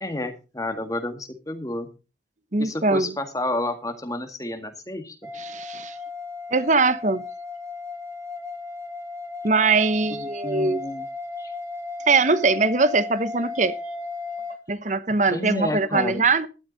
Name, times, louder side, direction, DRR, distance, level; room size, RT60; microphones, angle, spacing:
voice 1, 0.0-1.9 2.6-5.2 10.1-11.0 11.4-11.5 15.3-16.2, left 1 dB, 20° left, 1.8 m, -30 dB
voice 2, 2.5-3.1 5.3-6.0 6.5-7.2 9.4-10.8 12.1-13.8 14.7-16.5, right 3 dB, 40° right, 1.0 m, -21 dB
sound 1, 5.2-14.6, left 3 dB, 20° right, 3.3 m, -35 dB
13.0 x 11.5 x 4.0 m
head